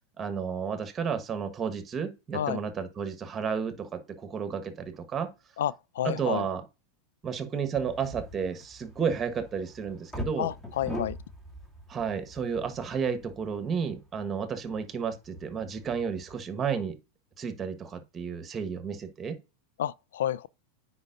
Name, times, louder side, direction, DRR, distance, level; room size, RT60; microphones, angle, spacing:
voice 1, 0.2-5.3 6.0-6.6 7.2-10.5 11.9-17.0 17.4-19.4, right 6 dB, 25° right, 1.4 m, -32 dB
voice 2, 5.6-6.5 10.4-11.2 19.8-20.5, left 11 dB, 70° left, 0.3 m, -30 dB
sound 1, 7.7-16.4, left 1 dB, 15° left, 2.7 m, -43 dB
9.6 x 4.4 x 2.6 m
hypercardioid pair, 95°, 0 cm